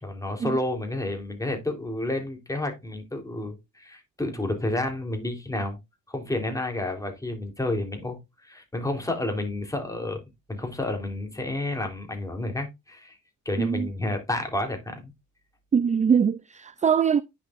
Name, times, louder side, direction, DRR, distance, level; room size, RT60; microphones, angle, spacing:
voice 1, 0.0-5.8 6.1-10.2 10.5-13.2 13.5-15.1, left 1 dB, 10° left, 3.6 m, -30 dB
voice 2, 13.6-13.9 15.7-17.2, right 7 dB, 25° right, 0.4 m, -22 dB
9.6 x 7.4 x 2.5 m
cardioid pair, 90°, 30 cm